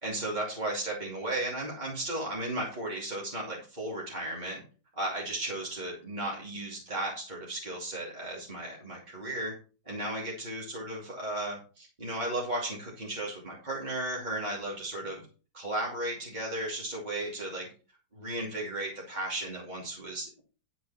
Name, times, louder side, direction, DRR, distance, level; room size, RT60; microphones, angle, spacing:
voice 1, 0.0-4.6 4.9-9.5 9.9-15.3 15.5-17.7 18.1-20.4, right 1 dB, 25° right, -3 dB, 2.9 m, -35 dB
10.5 x 7.8 x 4.3 m, 0.36 s
omnidirectional pair, 1.8 m